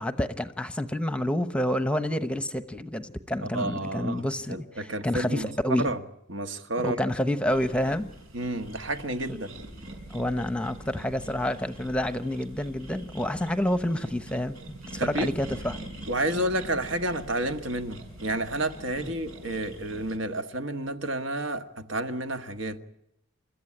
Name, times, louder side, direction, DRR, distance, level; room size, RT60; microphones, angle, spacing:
voice 1, 0.0-5.9 6.8-8.1 9.3-9.4 10.1-15.8, left 1 dB, 5° left, 0.9 m, -28 dB
voice 2, 3.4-6.0 6.3-7.0 8.3-9.5 15.0-15.3 16.1-22.8, right 1 dB, 70° right, 1.7 m, -30 dB
sound 1, 7.5-20.2, right 1 dB, 85° right, 6.7 m, -44 dB
29.5 x 14.5 x 9.9 m
head